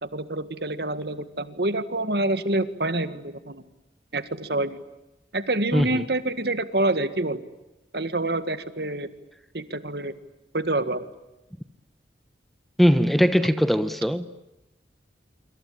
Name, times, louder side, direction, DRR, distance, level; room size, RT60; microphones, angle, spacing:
voice 1, 0.0-3.6 4.1-4.8 5.3-7.4 7.9-9.1 9.5-10.1 10.5-11.1, right 2 dB, 60° right, 1.9 m, -27 dB
voice 2, 5.7-6.0 12.8-14.3, equal, ahead, 1.0 m, -20 dB
26.5 x 25.0 x 8.6 m
head